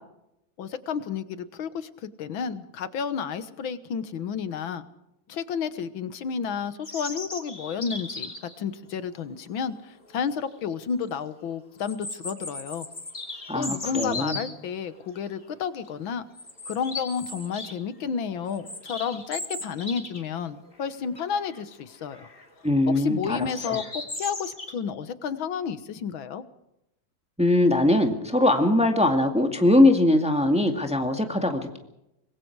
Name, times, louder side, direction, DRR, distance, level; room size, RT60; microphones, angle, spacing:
voice 1, 0.6-4.9 5.3-12.9 13.5-16.2 16.7-22.3 22.9-26.4, left 6 dB, 85° left, 13 dB, 2.0 m, -31 dB
sound 1, 6.8-8.5 10.1-10.2 10.6-10.7 11.8-14.5 15.2-15.4 15.7-15.9 16.3-17.7 18.1-20.3 20.6-20.7 21.1-21.6 22.1-22.5 23.3-24.7, left 2 dB, 25° left, 3.1 m, -37 dB
voice 2, 13.5-14.4 22.6-23.8 27.4-31.8, left 1 dB, 5° right, 4 dB, 2.0 m, -21 dB
25.0 x 21.5 x 4.8 m, 0.84 s
omnidirectional pair, 2.1 m